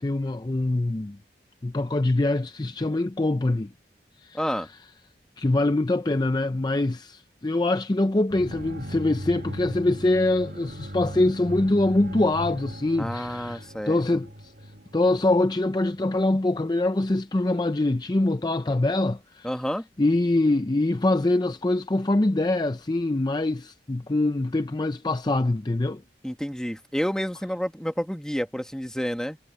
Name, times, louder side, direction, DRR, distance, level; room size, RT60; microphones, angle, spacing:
voice 1, 0.0-1.2 1.6-3.7 4.2-4.4 5.4-14.5 14.9-19.5 20.0-26.0, left 2 dB, 25° left, 0.5 m, -24 dB
voice 2, 4.3-4.7 13.0-14.0 19.4-19.9 26.2-29.4, equal, 5° left, 1.3 m, -29 dB
sound 1, 8.3-16.1, equal, 60° right, 4.3 m, -38 dB
head